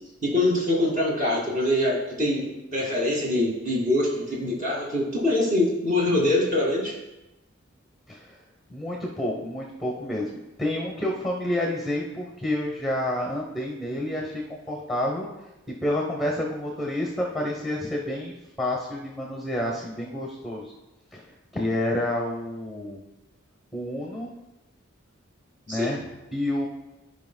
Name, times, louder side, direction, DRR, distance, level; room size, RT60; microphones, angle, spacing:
voice 1, 0.2-7.0 25.7-25.9, left 1 dB, 40° right, -4 dB, 2.3 m, -24 dB
voice 2, 8.7-14.4 14.7-15.3 15.8-18.3 18.6-20.7 21.1-21.3 21.5-23.0 23.7-24.3 25.7-26.7, left 1 dB, ahead, -1 dB, 1.0 m, -29 dB
14.5 x 5.3 x 2.3 m, 0.98 s
head